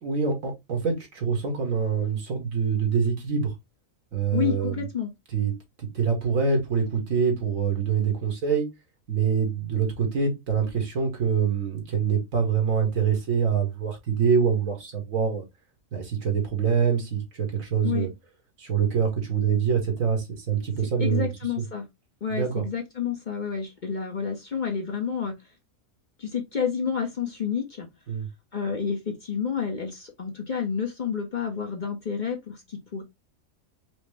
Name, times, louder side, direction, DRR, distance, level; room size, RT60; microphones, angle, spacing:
voice 1, 0.0-3.5 4.1-4.9 5.3-5.5 5.9-8.7 9.1-15.5 15.9-18.1 18.6-21.6 22.3-22.6 28.1-28.3, right 6 dB, 80° right, 1.8 m, -25 dB
voice 2, 4.3-5.1 17.8-18.1 21.0-21.9 22.2-25.4 26.2-27.9 28.5-33.0, left 7 dB, 45° left, 0.8 m, -29 dB
5.1 x 2.0 x 3.2 m
omnidirectional pair, 1.4 m